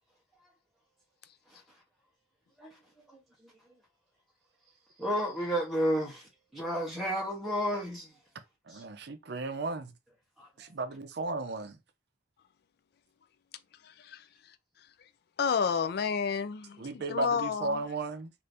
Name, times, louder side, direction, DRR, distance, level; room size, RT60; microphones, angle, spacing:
voice 1, 5.0-6.2 6.5-8.1 8.7-8.8 10.4-10.5, equal, ahead, 0.8 m, -31 dB
voice 2, 8.7-9.9 10.6-11.8 16.8-18.3, right 2 dB, 60° right, 0.5 m, -35 dB
voice 3, 13.8-14.3 15.4-17.9, left 6 dB, 55° left, 0.3 m, -31 dB
2.7 x 2.6 x 3.3 m
head